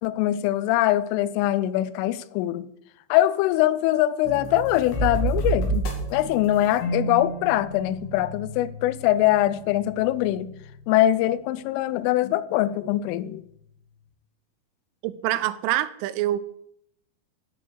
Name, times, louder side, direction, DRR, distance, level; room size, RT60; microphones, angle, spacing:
voice 1, 0.0-2.7 3.1-10.5 10.9-13.4, left 14 dB, 85° left, 3.1 m, -23 dB
sound 1, 4.2-11.0, right 2 dB, 70° left, 4.4 m, -31 dB
voice 2, 15.0-16.4, right 14 dB, 90° right, 3.2 m, -25 dB
12.5 x 6.2 x 7.8 m
omnidirectional pair, 5.6 m